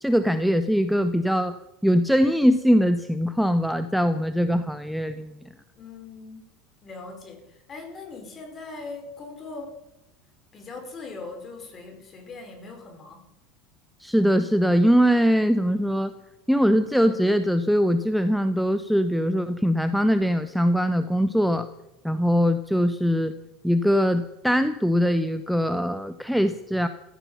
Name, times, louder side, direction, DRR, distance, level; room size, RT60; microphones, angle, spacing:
voice 1, 0.0-1.5 1.8-5.4 14.0-16.1 16.5-21.7 22.0-23.3 23.6-26.9, equal, ahead, 11 dB, 1.0 m, -22 dB
voice 2, 5.7-6.5 6.8-9.8 10.5-13.3, left 3 dB, 30° left, 4 dB, 5.1 m, -40 dB
16.0 x 14.5 x 5.7 m, 0.88 s
figure-of-eight pair, 75°, 0 cm